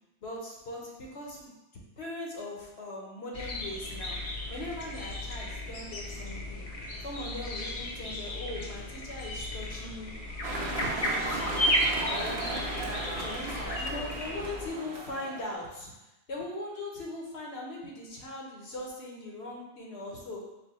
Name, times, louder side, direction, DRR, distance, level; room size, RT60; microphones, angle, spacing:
voice 1, 0.2-1.5 2.0-4.2 4.5-6.7 7.0-10.1 10.5-11.7 12.1-15.9 16.3-20.5, left 1 dB, 85° left, -2 dB, 1.2 m, -40 dB
sound 1, 3.3-14.7, left 1 dB, 45° left, 0.5 m, -34 dB
sound 2, 10.4-15.5, right 2 dB, 90° right, 1.0 m, -36 dB
4.5 x 2.2 x 4.1 m, 0.95 s
omnidirectional pair, 1.0 m